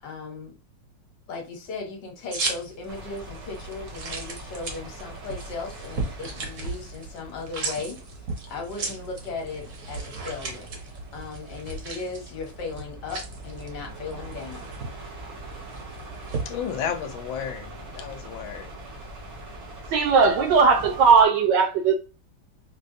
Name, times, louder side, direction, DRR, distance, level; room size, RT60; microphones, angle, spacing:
voice 1, 0.0-0.5 1.3-8.0 8.5-14.7, left 4 dB, 60° left, 1.4 m, -37 dB
sound 1, 2.3-16.4, right 3 dB, 55° right, 0.9 m, -36 dB
sound 2, 2.9-21.3, right 1 dB, 85° right, 2.3 m, -43 dB
voice 2, 16.4-18.8, left 8 dB, 85° left, 1.4 m, -32 dB
voice 3, 19.9-21.9, right 5 dB, 70° right, 1.2 m, -18 dB
5.1 x 2.1 x 2.6 m
omnidirectional pair, 2.2 m